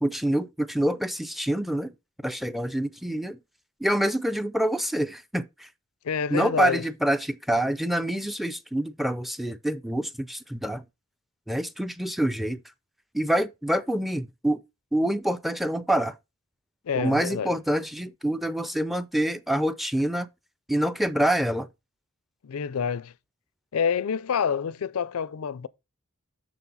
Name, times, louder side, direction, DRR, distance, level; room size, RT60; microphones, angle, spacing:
voice 1, 0.0-1.9 2.2-3.4 3.8-5.7 6.3-10.8 11.5-12.6 13.1-14.6 14.9-16.1 16.9-20.3 20.7-21.7, right 1 dB, ahead, 0.4 m, -26 dB
voice 2, 6.0-6.8 16.8-17.6 22.4-23.1 23.7-25.7, left 7 dB, 85° left, 0.5 m, -27 dB
6.9 x 6.2 x 4.0 m
head